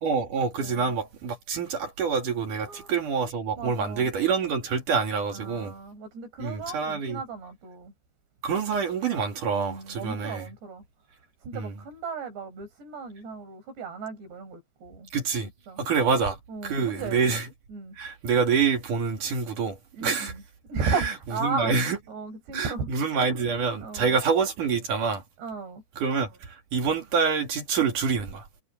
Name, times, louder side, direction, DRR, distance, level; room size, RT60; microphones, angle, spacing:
voice 1, 0.0-5.7 6.4-7.2 8.4-10.4 11.5-11.7 15.1-15.5 15.8-16.4 16.6-17.4 18.0-20.3 20.8-20.9 21.4-22.0 22.5-25.2 26.0-28.5, right 5 dB, 55° right, 3.7 m, -26 dB
voice 2, 0.6-0.9 2.6-2.9 3.6-4.1 5.3-7.9 9.5-10.8 11.4-15.1 15.4-15.8 16.5-17.4 17.7-18.0 20.0-20.4 20.7-22.9 23.8-24.2 25.4-25.8, right 4 dB, 85° right, 7.9 m, -35 dB
omnidirectional pair, 4.8 m